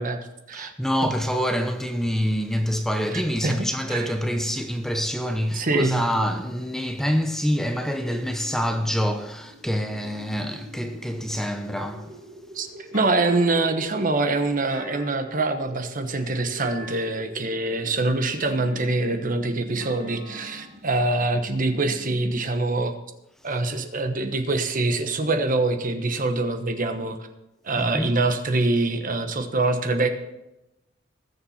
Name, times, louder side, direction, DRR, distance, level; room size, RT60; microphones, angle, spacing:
voice 1, 0.0-0.7 1.0-1.1 3.4-3.6 3.9-4.1 5.5-6.1 12.5-22.9 23.4-27.2 27.6-30.1, right 2 dB, 45° right, 1.1 m, -24 dB
voice 2, 0.5-12.2 27.8-28.1, equal, ahead, 0.7 m, -26 dB
sound 1, 9.1-22.7, equal, 60° right, 2.1 m, -45 dB
Thump thud, 12.9-13.9 14.7-15.6 16.6-17.3 18.4-19.1 19.8-20.8, equal, 75° left, 2.6 m, -43 dB
20.0 x 7.2 x 4.2 m
head